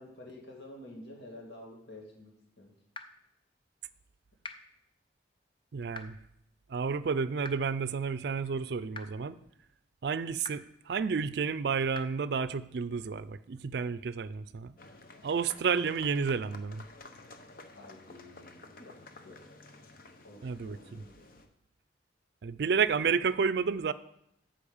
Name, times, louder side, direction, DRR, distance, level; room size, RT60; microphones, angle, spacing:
voice 1, 0.0-2.7 17.7-19.5 20.2-21.2, left 1 dB, 70° left, -1 dB, 2.4 m, -50 dB
sound 1, 2.9-3.0 4.4-4.5 5.9-6.0 7.4-7.5 8.9-9.0 10.4-10.5 11.9-12.0, left 3 dB, 30° left, 0.6 m, -41 dB
voice 2, 5.7-6.1 6.7-9.4 10.0-14.7 15.2-16.8 20.4-21.0 22.4-23.9, right 5 dB, 60° right, 16 dB, 0.4 m, -31 dB
sound 2, 14.8-21.5, left 3 dB, 50° left, 0.9 m, -52 dB
8.4 x 5.6 x 7.1 m, 0.77 s
head